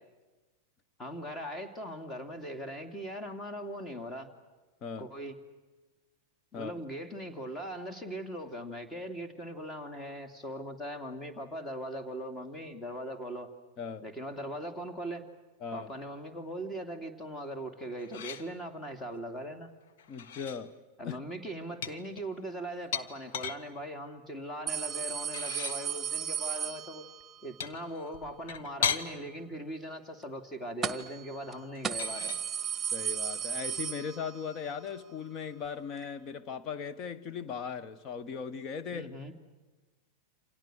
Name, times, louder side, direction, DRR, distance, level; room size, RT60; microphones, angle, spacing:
voice 1, 1.0-4.3 5.0-5.3 6.5-13.5 14.0-15.2 15.7-19.7 21.0-27.1 27.4-32.4 38.9-39.3, equal, 20° left, 3.0 m, -40 dB
voice 2, 4.8-5.1 6.5-6.7 13.8-14.1 15.6-15.9 20.1-20.8 21.0-21.2 32.9-39.1, left 6 dB, 35° left, 1.4 m, -38 dB
sound 1, 18.0-18.5 20.0-20.6 21.8-23.6 25.2-25.8 27.6-29.1 31.8-32.5, left 7 dB, 60° left, 1.5 m, -36 dB
sound 2, 24.7-27.4 30.8-31.2 31.5-31.6 31.8-34.6 34.9-35.0 36.0-36.1, right 8 dB, 15° right, 1.6 m, -35 dB
29.0 x 27.0 x 6.4 m
figure-of-eight pair, 95°, 0 cm